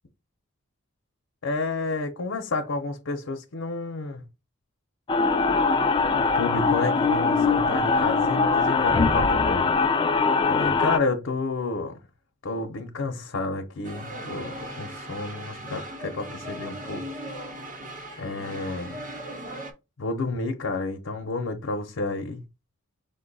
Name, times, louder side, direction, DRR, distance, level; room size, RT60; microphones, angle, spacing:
voice 1, 1.4-4.2 6.2-9.7 10.5-12.0 12.4-17.0 18.2-19.0 20.0-22.4, left 3 dB, 75° left, 0.7 m, -30 dB
sound 1, 5.1-11.0, left 4 dB, 25° left, 0.3 m, -22 dB
sound 2, 13.8-19.7, right 1 dB, 40° right, 0.8 m, -38 dB
5.3 x 2.2 x 3.9 m
head